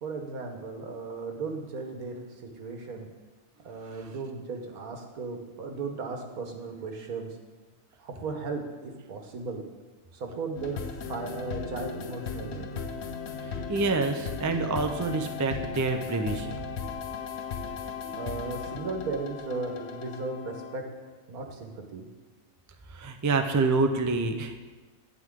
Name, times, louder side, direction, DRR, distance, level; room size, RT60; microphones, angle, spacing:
voice 1, 0.0-2.2 2.6-3.1 3.6-7.4 8.0-9.6 10.1-12.9 18.1-22.1, right 4 dB, 90° right, 3 dB, 1.7 m, -36 dB
sound 1, 10.6-21.0, left 6 dB, 55° left, 0.9 m, -37 dB
voice 2, 13.4-16.6 22.9-24.6, right 3 dB, 30° right, 6 dB, 0.3 m, -27 dB
11.0 x 9.8 x 3.7 m, 1.2 s
omnidirectional pair, 1.5 m